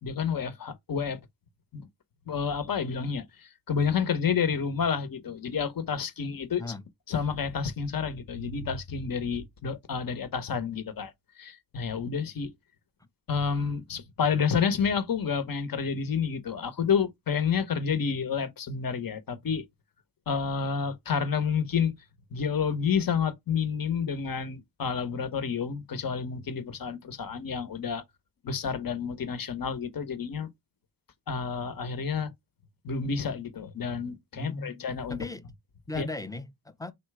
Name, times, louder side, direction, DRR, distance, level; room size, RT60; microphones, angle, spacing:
voice 1, 0.0-1.2 1.7-1.9 2.3-6.7 7.1-11.1 11.4-12.5 13.3-19.6 20.3-21.9 22.3-28.0 28.4-30.5 31.3-32.3 32.8-35.2 35.9-36.1, left 6 dB, 50° left, 1.0 m, -29 dB
voice 2, 34.3-34.8 35.1-35.5 35.9-36.9, left 2 dB, 10° left, 0.6 m, -37 dB
3.3 x 2.9 x 4.6 m
cardioid pair, 85°, 43 cm